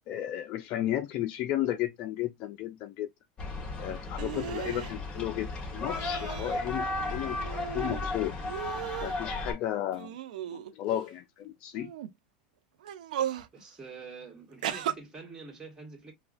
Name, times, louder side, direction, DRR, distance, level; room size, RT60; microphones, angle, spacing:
voice 1, 0.1-3.1 3.8-8.3 9.0-10.1 10.5-11.9, left 12 dB, 45° left, 0.4 m, -33 dB
sound 1, 3.4-9.5, left 2 dB, 20° left, 1.5 m, -35 dB
sound 2, 4.2-4.9 5.9-6.6 7.0-8.1 8.4-9.2 9.9-11.0 11.7-12.1 12.8-13.5 14.6-14.9, right 11 dB, 80° right, 0.6 m, -36 dB
voice 2, 13.5-16.1, right 4 dB, 15° right, 1.6 m, -46 dB
5.6 x 2.3 x 2.5 m
supercardioid pair, 125°, 4 cm